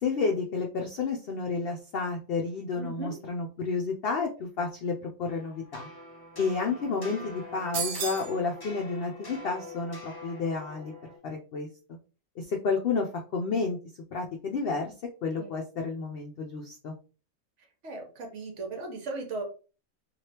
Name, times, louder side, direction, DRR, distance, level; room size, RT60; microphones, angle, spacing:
voice 1, 0.0-5.9 6.4-10.9 11.2-11.7 12.4-13.8 14.1-14.9 15.2-16.9, left 4 dB, 75° left, 2 dB, 0.5 m, -31 dB
voice 2, 2.8-3.1 15.4-15.5 17.8-19.4, right 3 dB, 60° right, 2 dB, 1.1 m, -37 dB
sound 1, 5.3-11.2, left 2 dB, 20° left, 0.6 m, -44 dB
sound 2, 7.7-8.3, right 7 dB, 85° right, 1.1 m, -32 dB
3.2 x 2.5 x 2.8 m, 0.35 s
omnidirectional pair, 1.5 m